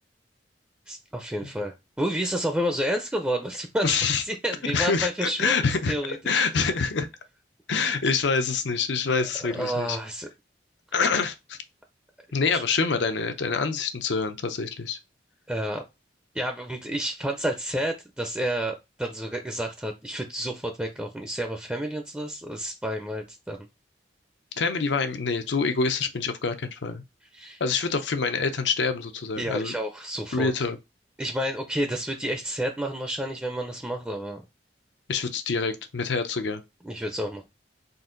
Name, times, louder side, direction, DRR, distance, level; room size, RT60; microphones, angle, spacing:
voice 1, 0.9-4.0 4.2-5.5 5.9-6.3 9.5-10.3 12.5-12.6 15.5-15.8 16.3-23.7 27.3-27.6 29.4-30.5 31.2-34.4 36.8-37.4, equal, 10° right, 0.5 m, -30 dB
voice 2, 3.8-4.2 4.6-5.9 6.2-7.1 7.7-10.0 10.9-11.6 12.3-15.0 24.6-27.0 27.6-29.7 30.3-30.8 35.1-36.6, left 4 dB, 80° left, 0.6 m, -26 dB
3.9 x 2.5 x 3.8 m
head